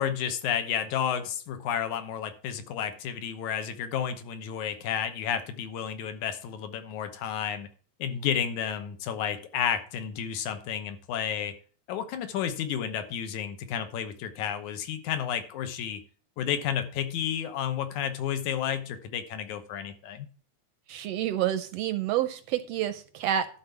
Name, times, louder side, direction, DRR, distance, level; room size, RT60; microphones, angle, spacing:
voice 1, 0.0-7.7 8.0-11.6 11.9-16.0 16.4-20.3, left 9 dB, 85° left, 9 dB, 2.4 m, -31 dB
voice 2, 20.9-23.5, right 11 dB, 80° right, 11 dB, 1.4 m, -28 dB
12.0 x 4.0 x 7.1 m, 0.41 s
omnidirectional pair, 3.3 m